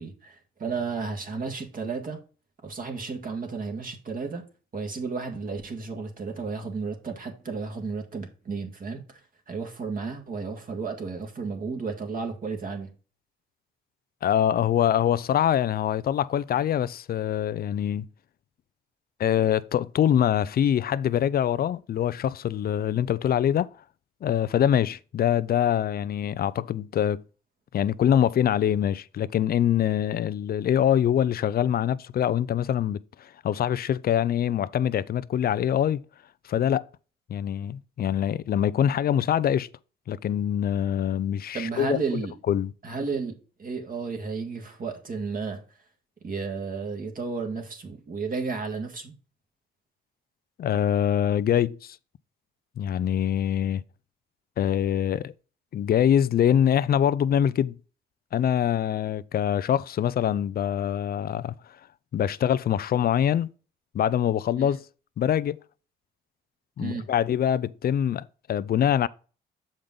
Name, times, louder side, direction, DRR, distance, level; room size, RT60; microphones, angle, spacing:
voice 1, 0.0-2.2 2.6-4.4 4.7-9.2 9.5-12.9 41.5-42.3 42.8-43.3 43.6-45.6 46.2-49.1 64.6-64.7 66.8-67.1, right 4 dB, 45° right, 2.0 m, -33 dB
voice 2, 14.2-18.1 19.2-23.7 24.2-27.2 27.7-36.0 36.5-36.8 37.3-39.7 40.1-42.0 42.5-42.7 50.6-52.0 52.8-53.8 54.6-55.3 55.7-57.7 58.3-61.5 62.1-63.5 63.9-64.8 65.2-65.6 66.8-69.1, left 10 dB, 50° left, 0.5 m, -24 dB
7.4 x 5.1 x 3.9 m
cardioid pair, 90°, 20 cm